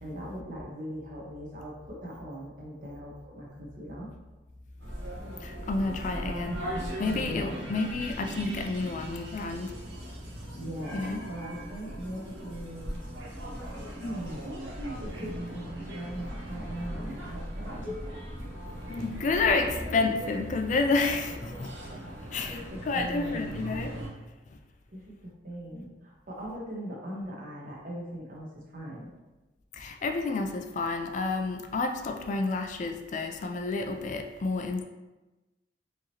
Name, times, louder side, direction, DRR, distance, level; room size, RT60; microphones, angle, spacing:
voice 1, 0.0-4.1 7.2-7.7 10.6-13.0 14.0-18.0 22.3-23.6 24.9-29.1, equal, 50° right, -3 dB, 1.0 m, -40 dB
sound 1, 4.8-24.1, equal, 85° right, 0.9 m, -39 dB
voice 2, 5.4-6.6 7.0-9.8 10.9-11.3 18.9-21.7 22.3-23.9 29.7-34.8, left 3 dB, 45° left, 5 dB, 0.3 m, -30 dB
4.7 x 2.9 x 2.8 m, 1.1 s
head